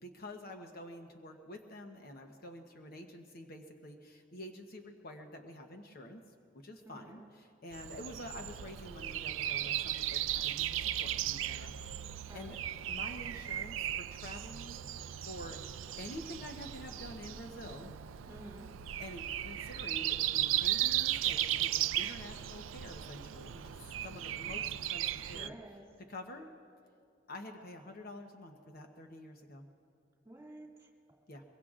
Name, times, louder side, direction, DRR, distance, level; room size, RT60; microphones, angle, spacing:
voice 1, 0.0-6.2 6.5-7.2 7.6-12.0 12.3-12.6 12.9-14.8 15.2-15.6 16.0-17.9 19.0-23.8 24.0-25.5 26.1-26.5 27.3-29.7 31.3-31.4, left 1 dB, 50° left, 4 dB, 0.9 m, -48 dB
voice 2, 6.8-7.3 12.3-12.6 18.3-18.6 25.3-25.8 30.2-30.9, right 1 dB, 15° right, -1 dB, 2.3 m, -51 dB
Breathing, 7.7-25.5, right 12 dB, 85° right, 0.4 m, -36 dB
23.5 x 23.0 x 2.5 m, 2.3 s
head